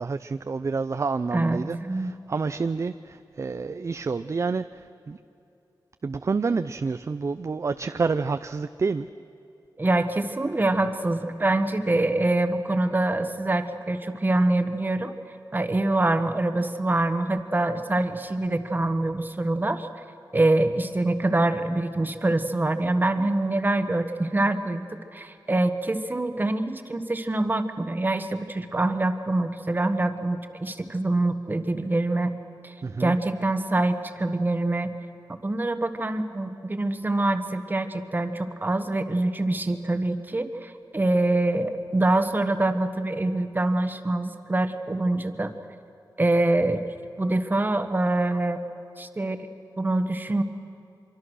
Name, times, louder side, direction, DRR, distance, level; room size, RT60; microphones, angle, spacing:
voice 1, 0.0-5.2 6.0-9.1 32.8-33.1, right 4 dB, 40° right, 11 dB, 0.5 m, -28 dB
voice 2, 1.3-2.1 9.8-15.1 15.5-19.9 20.3-24.9 25.1-32.3 32.6-32.7 33.0-34.9 35.4-45.5 46.2-46.8 47.2-48.6 49.0-49.4 49.8-50.4, right 2 dB, 25° right, 8 dB, 1.3 m, -25 dB
25.0 x 24.0 x 6.4 m, 2.7 s
wide cardioid pair, 110°, 8 cm